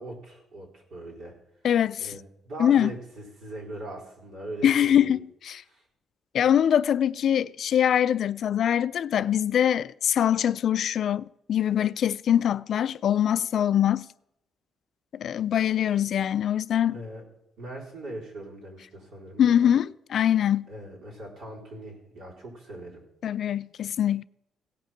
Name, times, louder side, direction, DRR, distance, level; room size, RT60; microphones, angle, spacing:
voice 1, 0.0-1.4 2.0-5.2 5.7-5.8 16.9-17.2 17.6-19.7 20.7-23.0, right 1 dB, 70° right, 4.3 m, -40 dB
voice 2, 1.6-2.1 2.6-2.9 4.6-5.2 5.5-5.6 6.3-14.1 15.1-17.0 19.4-20.7 23.2-24.2, left 10 dB, 65° left, 0.3 m, -23 dB
17.0 x 5.8 x 5.9 m
cardioid pair, 90°, 0 cm